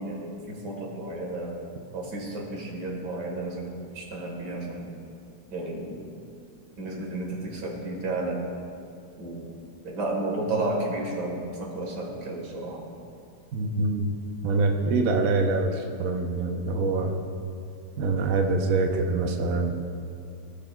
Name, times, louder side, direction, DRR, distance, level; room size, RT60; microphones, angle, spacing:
voice 1, 0.0-1.6 1.9-5.0 5.5-6.0 6.8-8.4 9.2-9.5 9.8-12.8, right 2 dB, 80° right, -1 dB, 2.0 m, -32 dB
voice 2, 13.5-14.1 14.4-17.2 18.0-19.7, right 3 dB, 65° right, 3 dB, 0.9 m, -25 dB
17.5 x 6.1 x 2.2 m, 2.5 s
omnidirectional pair, 1.8 m